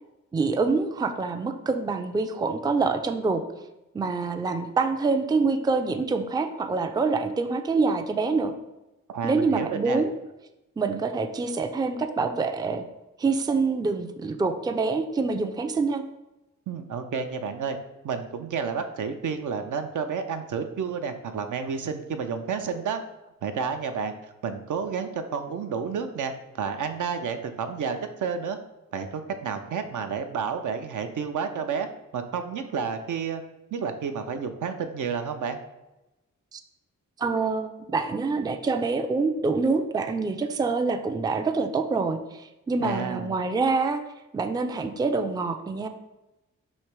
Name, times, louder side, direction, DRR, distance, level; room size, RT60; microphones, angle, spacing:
voice 1, 0.3-3.4 3.9-8.5 9.2-10.1 10.8-12.8 13.2-16.0 36.5-36.6 37.2-44.0 44.3-45.9, right 4 dB, 15° right, 7 dB, 0.3 m, -26 dB
voice 2, 9.1-10.0 16.7-17.8 18.0-23.0 23.4-24.1 24.4-28.6 28.9-31.9 32.1-33.4 33.7-35.6 42.8-43.3, right 6 dB, 70° right, 7 dB, 0.5 m, -30 dB
3.2 x 2.9 x 4.6 m, 0.98 s
cardioid pair, 50°, 32 cm